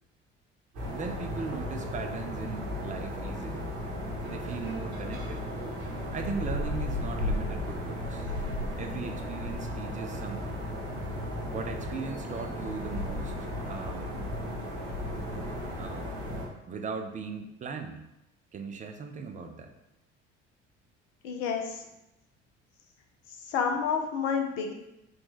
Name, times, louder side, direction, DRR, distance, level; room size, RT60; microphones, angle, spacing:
sound 1, 0.7-16.5, left 1 dB, 70° right, 1.1 m, -35 dB
voice 1, 0.9-3.7 4.3-5.5 6.1-8.3 8.8-10.7 11.5-14.2 15.8-16.1 16.7-18.1 18.5-19.7, right 5 dB, 20° right, 5 dB, 0.4 m, -38 dB
voice 2, 21.2-21.9 23.3-24.7, left 6 dB, 60° left, 3 dB, 0.7 m, -30 dB
3.8 x 2.3 x 3.8 m, 0.90 s
figure-of-eight pair, 55°, 35 cm